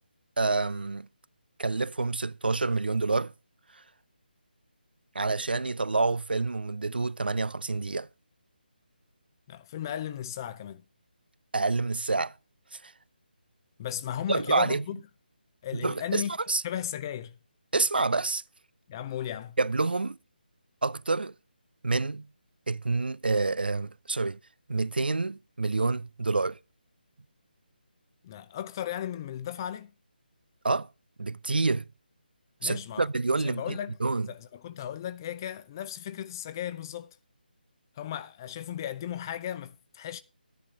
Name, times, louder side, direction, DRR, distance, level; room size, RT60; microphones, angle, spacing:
voice 1, 0.4-1.1 1.6-3.3 5.1-8.1 11.5-12.3 12.7-12.9 14.3-14.8 15.8-16.2 16.5-16.6 17.7-18.4 19.6-20.2 20.8-21.3 21.8-22.3 22.7-24.4 24.7-26.6 30.6-30.9 31.2-31.8 32.6-34.3, right 3 dB, 70° right, 0.5 m, -28 dB
voice 2, 9.5-10.8 13.8-15.0 15.6-16.3 16.6-17.4 18.9-19.6 28.2-29.9 32.6-33.1 33.4-34.0 34.3-37.1 38.0-40.2, left 10 dB, 25° left, 0.6 m, -36 dB
11.5 x 10.5 x 3.7 m
figure-of-eight pair, 150°, 6 cm